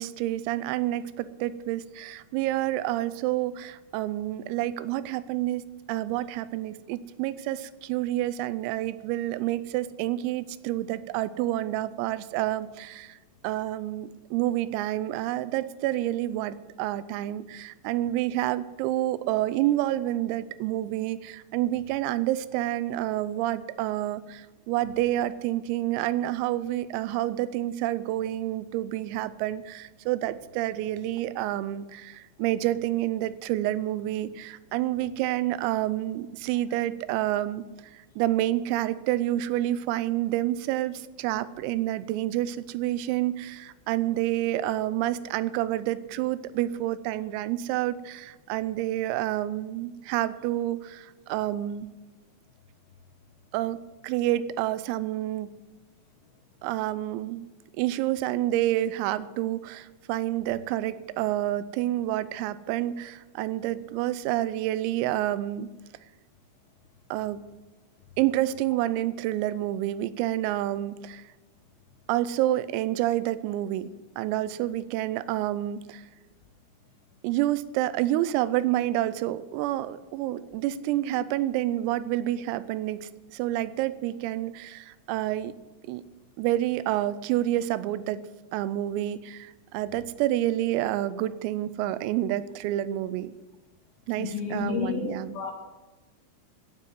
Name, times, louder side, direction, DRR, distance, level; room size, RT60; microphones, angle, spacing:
voice 1, 0.0-13.2 13.4-51.9 53.5-55.5 56.6-57.5 57.7-65.7 67.1-67.4 68.2-71.3 72.1-73.9 74.2-76.1 77.2-85.5 85.8-86.0 86.4-88.2 88.5-93.3 94.1-95.3, right 14 dB, 85° right, 15 dB, 3.3 m, -28 dB
voice 2, 94.2-95.5, left 6 dB, 65° left, 3 dB, 2.6 m, -31 dB
15.5 x 7.7 x 7.5 m, 1.2 s
omnidirectional pair, 6.0 m